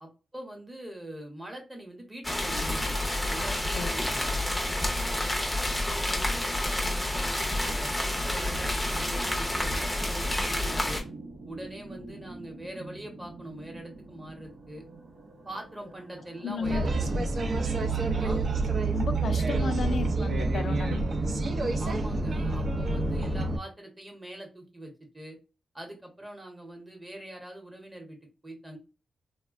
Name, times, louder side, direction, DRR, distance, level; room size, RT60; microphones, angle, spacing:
voice 1, 0.0-3.0 3.3-4.4 5.6-11.0 11.5-14.8 15.4-17.1 18.2-18.4 21.8-25.4 25.7-28.2 28.4-28.8, right 1 dB, 15° right, 0.8 m, -43 dB
sound 1, 2.2-11.0, left 1 dB, 5° left, 0.6 m, -29 dB
sound 2, 6.0-21.0, right 2 dB, 85° right, 0.8 m, -47 dB
voice 2, 16.4-17.3 18.9-21.0, left 5 dB, 60° left, 0.3 m, -33 dB
sound 3, 16.6-23.6, right 3 dB, 50° right, 0.4 m, -28 dB
3.3 x 2.1 x 2.3 m
wide cardioid pair, 135°, 0 cm